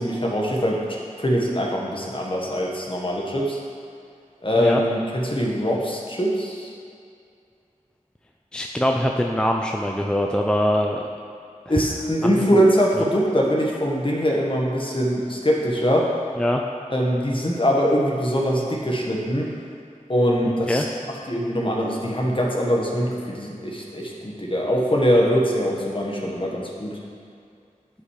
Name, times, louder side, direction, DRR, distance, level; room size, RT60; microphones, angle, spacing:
voice 1, 0.0-3.6 4.4-6.7 11.7-16.1 16.9-19.5 20.1-20.8 21.3-27.0, equal, 40° left, -2 dB, 1.3 m, -22 dB
voice 2, 8.5-11.0 11.7-11.8 12.2-12.6 16.4-16.6 20.7-20.8, equal, 5° left, 1 dB, 0.4 m, -23 dB
12.0 x 5.5 x 3.2 m, 2.4 s
wide cardioid pair, 50°, 14 cm